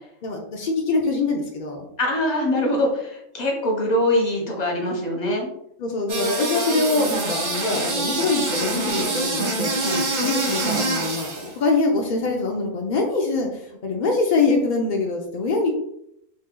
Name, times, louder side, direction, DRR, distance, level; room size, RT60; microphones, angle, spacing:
voice 1, 0.2-1.9 5.8-9.8 10.2-15.7, left 3 dB, 70° left, 1 dB, 0.4 m, -24 dB
voice 2, 2.0-5.5 9.8-10.0, left 1 dB, 35° left, 1 dB, 0.8 m, -23 dB
sound 1, 6.1-11.5, right 2 dB, 50° right, 0.6 m, -25 dB
3.1 x 2.7 x 3.6 m, 0.75 s
omnidirectional pair, 1.4 m